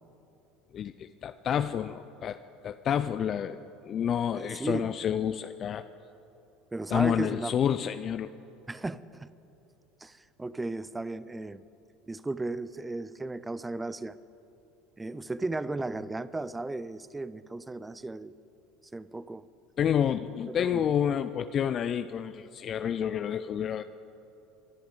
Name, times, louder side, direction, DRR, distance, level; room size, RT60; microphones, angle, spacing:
voice 1, 0.7-2.4 2.6-5.8 6.9-8.3 19.8-23.8, left 9 dB, 45° left, 11 dB, 0.4 m, -29 dB
voice 2, 4.4-4.9 6.7-7.5 8.7-9.3 10.0-11.6 12.1-14.2 15.0-18.3 18.9-19.4 20.5-20.8, right 2 dB, 15° right, 17 dB, 0.5 m, -35 dB
23.5 x 11.5 x 3.9 m, 3.0 s
hypercardioid pair, 75°, 0 cm